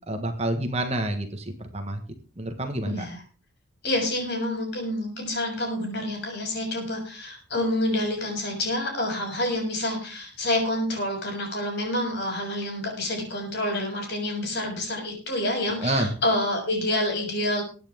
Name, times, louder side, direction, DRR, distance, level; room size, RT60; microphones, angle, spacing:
voice 1, 0.1-2.0 2.4-3.0 15.8-16.1, right 1 dB, 30° right, 6 dB, 1.5 m, -28 dB
voice 2, 2.8-3.2 3.8-17.6, left 1 dB, 55° left, 1 dB, 7.0 m, -28 dB
22.0 x 9.4 x 3.7 m, 0.37 s
head